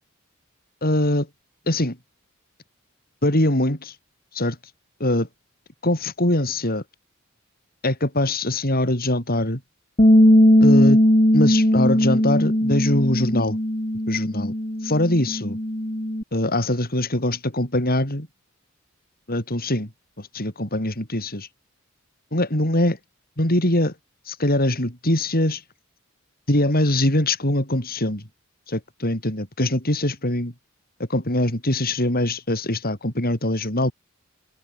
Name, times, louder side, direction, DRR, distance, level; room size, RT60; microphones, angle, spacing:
voice 1, 0.8-1.3 1.7-2.0 3.2-3.9 4.3-4.6 5.0-5.3 5.8-6.8 7.8-9.6 10.6-11.0 11.3-13.6 14.1-14.5 14.8-15.6 16.3-18.3 19.3-19.9 20.2-21.5 22.3-23.0 23.4-23.9 24.3-25.6 26.5-28.2 28.7-30.5 31.1-33.9, left 1 dB, 45° left, 6.4 m, -22 dB
Bass guitar, 10.0-16.2, equal, 30° left, 4.0 m, -18 dB
head